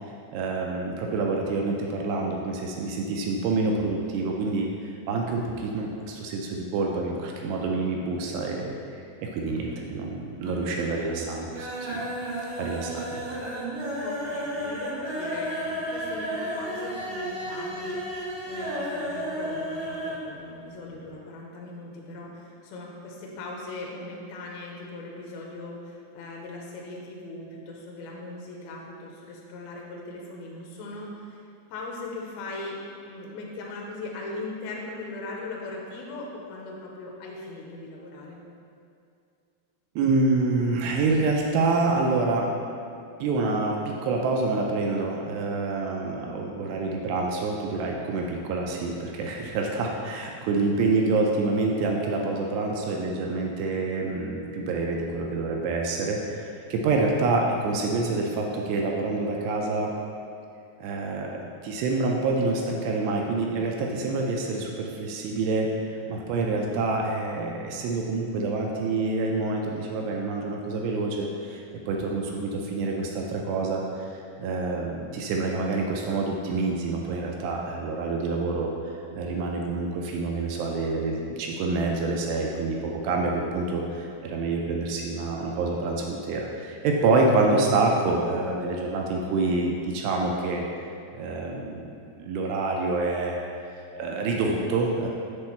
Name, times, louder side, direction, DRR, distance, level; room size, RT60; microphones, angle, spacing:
voice 1, 0.3-4.7 5.1-9.0 9.2-12.0 12.6-13.2 40.0-42.5 43.2-59.9 60.8-90.6 91.1-93.4 93.7-95.1, right 3 dB, 80° right, 0 dB, 2.5 m, -27 dB
sound 1, 9.5-10.1 10.4-10.9 11.2-20.3 20.5-20.6 20.9-21.0, equal, 60° right, 3.0 m, -33 dB
voice 2, 14.0-31.4 31.7-32.8 33.0-38.4, left 2 dB, 85° left, -2 dB, 2.2 m, -39 dB
7.8 x 3.5 x 4.3 m, 2.5 s
omnidirectional pair, 5.2 m